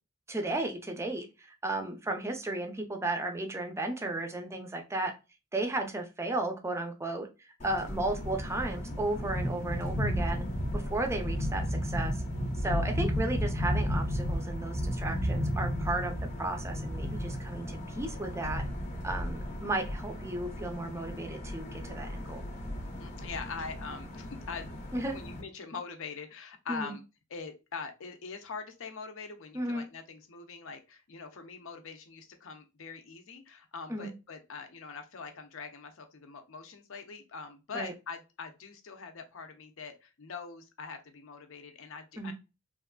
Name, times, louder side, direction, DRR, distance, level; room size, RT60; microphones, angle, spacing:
voice 1, 0.3-5.1 5.5-7.3 7.6-10.5 10.7-12.1 12.6-18.6 19.0-22.4 24.9-25.2 26.7-26.9 29.5-29.9 33.9-34.1 37.7-37.9 42.2-42.3, right 2 dB, 15° right, 4 dB, 0.5 m, -34 dB
sound 1, 7.6-25.4, equal, 35° left, 0.7 m, -34 dB
voice 2, 23.0-24.7 25.1-27.0 27.3-42.3, left 5 dB, 65° left, 6 dB, 0.6 m, -43 dB
3.3 x 2.4 x 2.2 m, 0.27 s
head